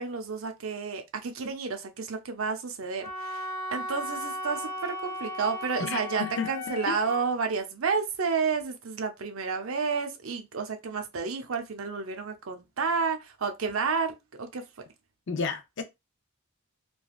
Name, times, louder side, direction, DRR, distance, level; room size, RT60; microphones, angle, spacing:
voice 1, 0.0-14.6, right 5 dB, 70° right, 0.6 m, -31 dB
Wind instrument woodwind instrument, 3.0-7.2, equal, 10° left, 0.9 m, -36 dB
voice 2, 5.8-6.5 6.9-7.0 15.3-15.8, left 5 dB, 55° left, 0.5 m, -32 dB
3.3 x 2.2 x 2.3 m
head